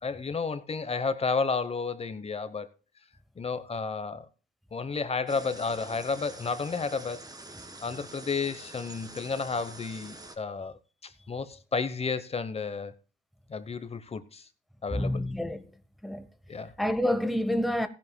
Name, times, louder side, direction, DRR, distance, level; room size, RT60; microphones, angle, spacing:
voice 1, 0.0-2.7 3.4-4.3 4.7-7.3 7.8-12.9 13.5-14.5 14.8-15.2 16.5-16.7, left 4 dB, 30° left, 1.0 m, -32 dB
sound 1, 5.3-10.4, right 2 dB, 20° right, 1.9 m, -46 dB
voice 2, 14.9-15.7 16.0-16.3 16.8-17.9, left 1 dB, ahead, 0.9 m, -28 dB
16.5 x 11.0 x 2.3 m
cardioid pair, 90°, 20 cm